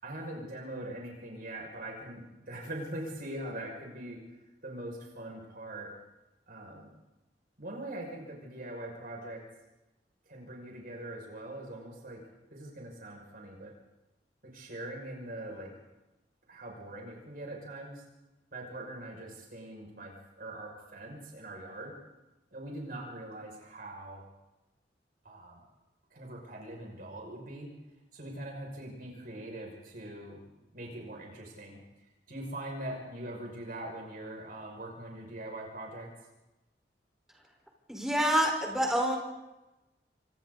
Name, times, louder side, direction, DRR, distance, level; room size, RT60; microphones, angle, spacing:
voice 1, 0.0-4.2 4.6-5.9 6.5-6.9 7.6-9.4 10.3-12.2 12.5-13.7 14.4-15.7 16.5-18.0 18.5-21.9 22.5-24.2 25.2-25.6 26.1-27.7 28.1-31.8 32.3-36.1, right 1 dB, 55° right, 0 dB, 6.2 m, -42 dB
voice 2, 37.9-39.2, equal, 5° right, 0 dB, 4.7 m, -27 dB
29.5 x 27.0 x 4.1 m, 1.0 s
head